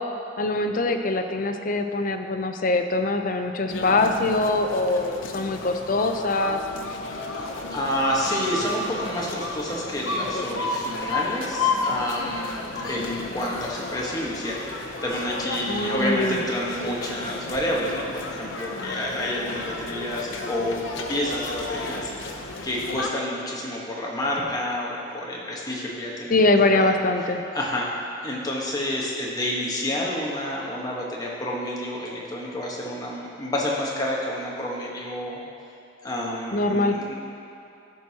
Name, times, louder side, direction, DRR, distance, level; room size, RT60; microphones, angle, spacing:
voice 1, 0.4-6.6 15.7-16.4 26.3-27.4 36.5-37.0, left 2 dB, 45° left, 6 dB, 0.5 m, -23 dB
sound 1, 3.7-23.1, left 3 dB, 85° left, 0.7 m, -32 dB
voice 2, 7.3-22.1 22.6-26.4 26.7-26.9 27.5-27.9 28.2-35.4 36.0-37.1, left 1 dB, 20° left, -4 dB, 1.2 m, -29 dB
14.0 x 6.1 x 2.9 m, 2.7 s
head